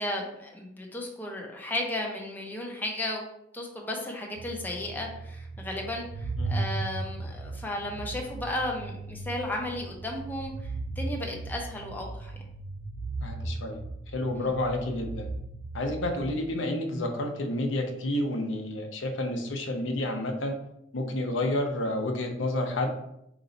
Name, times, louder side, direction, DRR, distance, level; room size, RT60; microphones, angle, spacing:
voice 1, 0.0-3.2 3.5-12.3 14.4-14.5, left 1 dB, 10° left, 0 dB, 0.6 m, -34 dB
sound 1, 4.4-16.5, right 3 dB, 90° right, 0.4 m, -37 dB
voice 2, 13.2-13.8 14.1-15.3 15.7-20.6 20.9-22.9, left 1 dB, 85° left, 3 dB, 0.7 m, -30 dB
3.9 x 3.0 x 4.0 m, 0.79 s
head